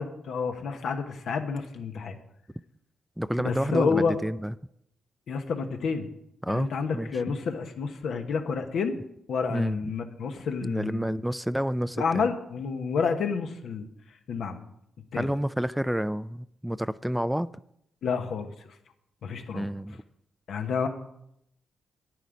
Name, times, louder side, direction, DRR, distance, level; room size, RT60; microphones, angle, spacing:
voice 1, 0.0-2.2 3.4-4.2 5.3-6.1 6.5-9.0 9.3-11.1 12.0-13.9 14.3-14.6 15.1-15.3 18.0-18.5 19.2-19.7 20.5-20.9, left 5 dB, 75° left, 6 dB, 1.1 m, -29 dB
voice 2, 3.2-4.5 6.4-7.1 9.5-9.8 10.6-12.3 15.2-17.5 19.5-20.0, equal, 5° right, 16 dB, 0.3 m, -29 dB
9.6 x 9.4 x 5.1 m, 0.77 s
cardioid pair, 65°, 0 cm